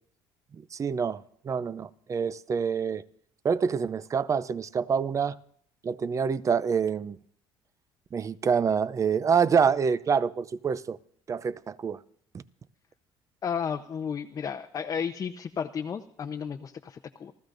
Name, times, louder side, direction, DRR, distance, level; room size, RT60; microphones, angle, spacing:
voice 1, 0.6-3.0 3.4-5.4 5.8-7.2 8.1-11.0 11.3-12.0, right 6 dB, 30° right, 0.6 m, -26 dB
voice 2, 13.4-17.3, left 7 dB, 35° left, 0.8 m, -33 dB
28.0 x 14.5 x 2.6 m
cardioid pair, 95°, 10 cm